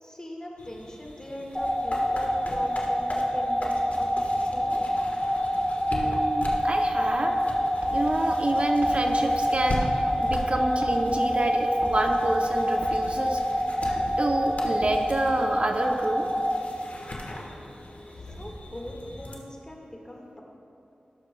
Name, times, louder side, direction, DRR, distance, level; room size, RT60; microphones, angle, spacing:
voice 1, 0.0-4.8 18.3-20.4, left 1 dB, 25° left, -1 dB, 1.6 m, -40 dB
sound 1, 0.6-19.4, left 1 dB, 60° left, 1.2 m, -39 dB
sound 2, 1.5-16.6, equal, 10° left, 2.2 m, -26 dB
voice 2, 5.9-7.4 7.9-13.4 14.2-16.3, right 2 dB, 45° right, 3 dB, 0.6 m, -28 dB
sound 3, 7.8-15.7, right 1 dB, 70° right, 0.8 m, -42 dB
17.5 x 6.8 x 2.2 m, 2.7 s
cardioid pair, 45°, 3 cm